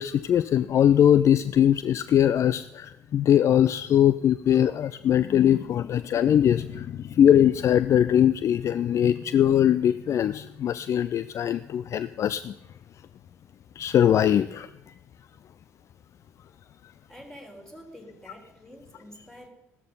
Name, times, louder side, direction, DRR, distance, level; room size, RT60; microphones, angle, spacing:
voice 1, 0.0-12.5 13.8-14.7, left 10 dB, 40° left, 15 dB, 0.4 m, -21 dB
voice 2, 17.1-19.5, equal, 5° left, 2 dB, 4.0 m, -47 dB
15.0 x 13.0 x 5.4 m, 0.92 s
figure-of-eight pair, 50°, 7 cm